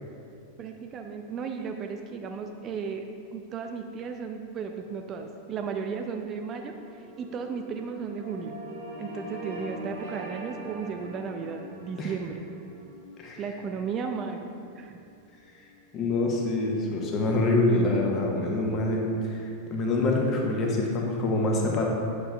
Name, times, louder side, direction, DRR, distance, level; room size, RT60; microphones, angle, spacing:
voice 1, 0.6-3.1 3.3-8.5 9.0-12.4 13.4-14.5 14.7-15.0, right 6 dB, 30° right, 5 dB, 0.4 m, -35 dB
sound 1, 4.7-16.4, right 1 dB, 60° right, 1.4 m, -44 dB
voice 2, 15.9-21.9, left 2 dB, 30° left, -1 dB, 1.1 m, -26 dB
8.7 x 6.6 x 2.3 m, 2.5 s
figure-of-eight pair, 90°, 0 cm